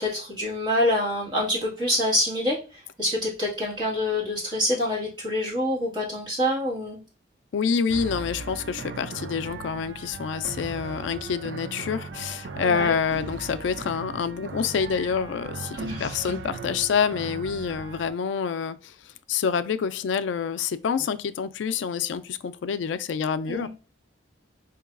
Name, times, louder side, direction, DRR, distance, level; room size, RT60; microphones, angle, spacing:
voice 1, 0.0-7.0 12.6-12.9 15.7-16.2 23.5-23.7, left 1 dB, 25° right, 1.7 m, -26 dB
voice 2, 7.5-23.7, left 6 dB, 80° left, 0.3 m, -27 dB
sound 1, 7.9-18.1, right 4 dB, 70° right, 0.4 m, -38 dB
3.8 x 2.9 x 2.4 m
head